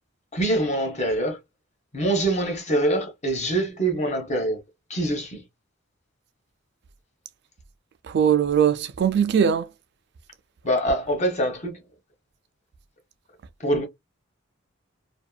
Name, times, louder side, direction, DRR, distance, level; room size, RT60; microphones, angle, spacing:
voice 1, 0.3-1.4 1.9-4.6 4.9-5.4 10.6-11.8 13.6-13.9, right 1 dB, 35° left, 0.9 m, -24 dB
voice 2, 8.1-9.7, right 8 dB, 55° right, 0.3 m, -20 dB
2.7 x 2.3 x 2.2 m
head